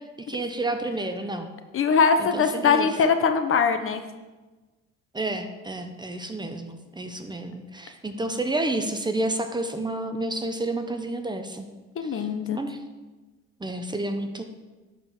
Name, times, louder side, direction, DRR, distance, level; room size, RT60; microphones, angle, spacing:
voice 1, 0.3-1.5 2.2-2.9 5.1-11.7 12.5-12.8 13.6-14.4, right 2 dB, 15° right, 6 dB, 0.9 m, -30 dB
voice 2, 1.7-4.0 12.0-12.6, left 5 dB, 45° left, 7 dB, 1.0 m, -22 dB
11.0 x 4.7 x 7.2 m, 1.2 s
cardioid pair, 110°, 30 cm